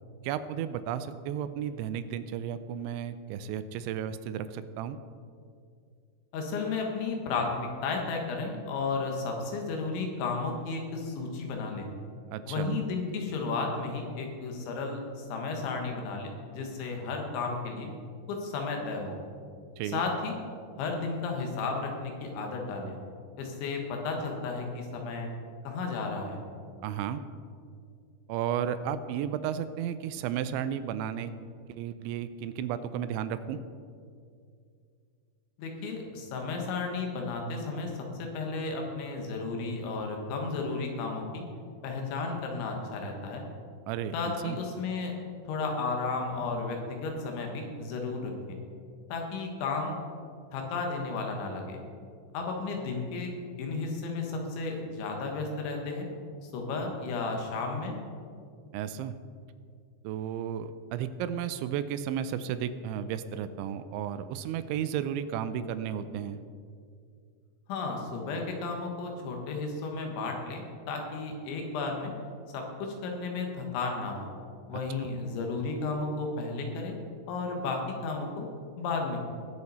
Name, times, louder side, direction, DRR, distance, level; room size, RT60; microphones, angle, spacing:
voice 1, 0.2-5.0 12.3-12.7 19.8-20.0 26.8-27.2 28.3-31.4 31.7-33.6 43.9-44.6 58.7-59.2 60.0-66.4 74.7-75.1, right 9 dB, 85° right, 12 dB, 2.9 m, -33 dB
voice 2, 6.3-11.9 12.5-17.9 18.3-19.2 19.8-20.4 20.8-23.0 23.4-25.3 25.7-26.4 35.6-37.9 38.2-41.4 41.8-43.5 44.1-45.1 45.4-48.6 49.1-49.9 50.5-51.8 52.3-53.3 53.6-56.1 56.5-58.0 67.7-72.1 72.5-74.3 74.7-77.0 77.3-78.5 78.8-79.2, left 3 dB, 80° left, 2 dB, 3.8 m, -33 dB
20.5 x 6.9 x 4.2 m, 2.3 s
omnidirectional pair, 5.3 m